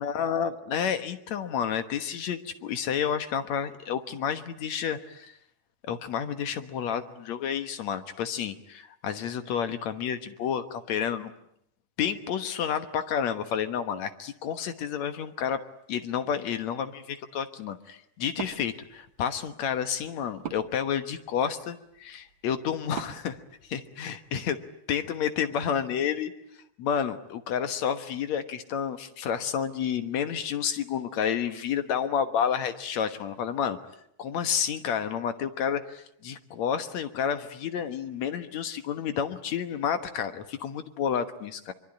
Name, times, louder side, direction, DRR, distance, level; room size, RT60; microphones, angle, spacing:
voice 1, 0.0-5.3 5.9-11.3 12.0-15.6 15.9-23.4 23.7-24.6 24.9-26.3 26.8-33.8 34.2-41.7, left 8 dB, 70° left, 9 dB, 2.5 m, -30 dB
Wood, 18.3-24.3, right 9 dB, 50° right, 1.8 m, -45 dB
24.0 x 24.0 x 10.0 m, 0.75 s
omnidirectional pair, 3.4 m